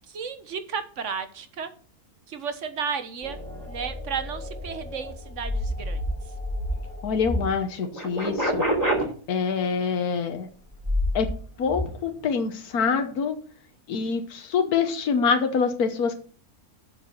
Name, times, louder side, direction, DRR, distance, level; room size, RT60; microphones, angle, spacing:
voice 1, 0.1-1.7 2.3-3.4 3.7-6.0, right 6 dB, 55° right, 10 dB, 1.4 m, -33 dB
sound 1, 3.2-7.5 7.8-9.0 10.7-11.3 11.7-11.9, equal, 10° right, 2.8 m, -29 dB
voice 2, 7.0-8.6 9.3-10.5 11.1-11.3 11.6-13.4 13.9-16.2, left 5 dB, 80° left, 6 dB, 1.6 m, -25 dB
7.7 x 7.4 x 6.0 m, 0.43 s
omnidirectional pair, 1.6 m